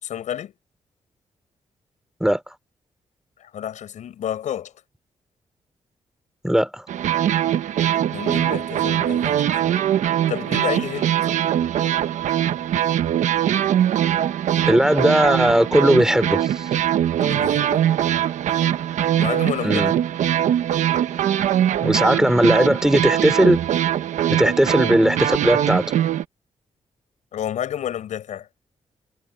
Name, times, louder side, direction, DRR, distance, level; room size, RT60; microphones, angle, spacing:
voice 1, 0.0-0.5 3.4-4.7 8.1-9.7 10.3-11.3 17.2-17.9 19.2-19.8 27.3-28.5, left 10 dB, 85° left, 6.0 m, -30 dB
voice 2, 6.4-6.8 14.7-16.7 19.6-19.9 21.8-23.6 24.3-25.9, equal, 5° right, 3.4 m, -18 dB
sound 1, 6.9-26.2, right 11 dB, 85° right, 1.1 m, -22 dB
cardioid pair, 70°, 12 cm